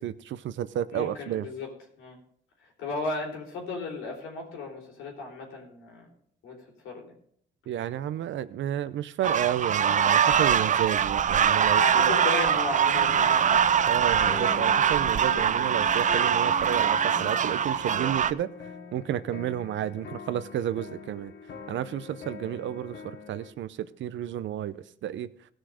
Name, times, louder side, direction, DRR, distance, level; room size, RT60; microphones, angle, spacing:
voice 1, 0.0-1.5 7.7-12.1 13.9-21.3 21.7-25.3, right 11 dB, 70° right, 14 dB, 0.7 m, -31 dB
voice 2, 0.9-1.7 2.0-2.2 2.6-6.1 6.4-7.2 11.7-14.0, left 3 dB, 90° left, 0 dB, 3.5 m, -35 dB
sound 1, 9.2-18.3, right 8 dB, 40° right, 0.5 m, -23 dB
sound 2, 12.9-23.5, left 5 dB, 60° left, 1.6 m, -42 dB
16.5 x 6.3 x 4.9 m, 0.66 s
cardioid pair, 90°, 20 cm